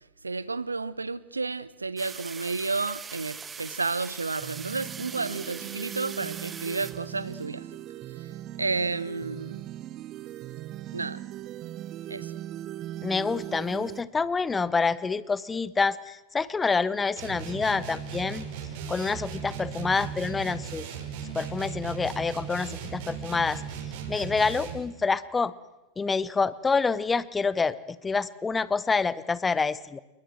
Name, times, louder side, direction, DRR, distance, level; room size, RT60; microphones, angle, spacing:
voice 1, 0.2-7.6 8.6-9.6 10.9-11.2 12.1-12.3, right 3 dB, 80° right, 1.0 m, -31 dB
sound 1, 2.0-7.5, right 6 dB, 20° right, 1.7 m, -41 dB
sound 2, 4.4-14.0, right 13 dB, 35° right, 0.9 m, -39 dB
voice 2, 13.0-18.4 18.9-20.9 21.3-23.6 24.1-25.5 26.0-30.0, left 4 dB, 15° left, 1.2 m, -27 dB
sound 3, 17.2-24.9, right 7 dB, 50° right, 5.8 m, -37 dB
28.5 x 22.5 x 7.8 m
figure-of-eight pair, 90°, 0 cm